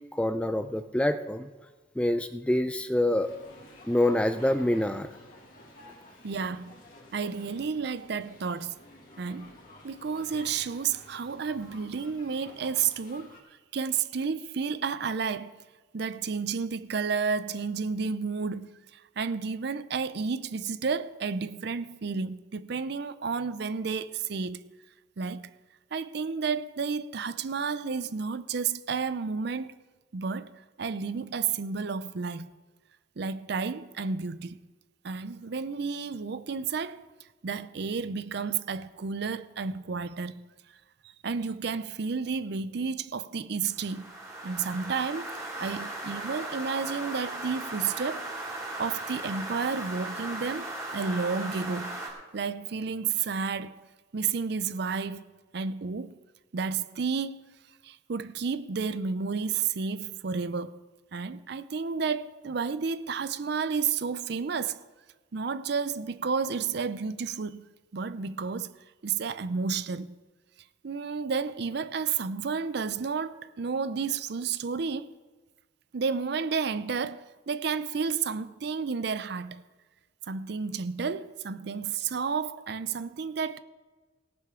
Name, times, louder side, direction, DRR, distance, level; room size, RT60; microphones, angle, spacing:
voice 1, 0.1-1.5 2.0-3.3 3.9-5.1, left 1 dB, 5° left, 0.4 m, -26 dB
sound 1, 3.2-13.4, left 1 dB, 45° left, 2.3 m, -51 dB
voice 2, 6.2-6.8 7.1-8.8 9.2-9.5 9.8-13.4 13.7-15.6 15.9-24.6 25.2-25.4 25.9-29.7 30.1-30.5 30.8-32.5 33.2-34.6 35.0-37.0 37.4-40.4 41.2-44.1 44.4-52.0 52.3-53.8 54.1-55.2 55.5-56.2 56.5-57.4 57.8-60.7 61.1-64.8 65.3-67.7 67.9-68.7 69.0-70.1 70.8-75.1 75.9-79.6 80.3-83.6, right 5 dB, 55° right, 0.5 m, -31 dB
sound 2, 43.7-52.1, right 1 dB, 15° right, 2.5 m, -37 dB
18.0 x 10.5 x 3.7 m
head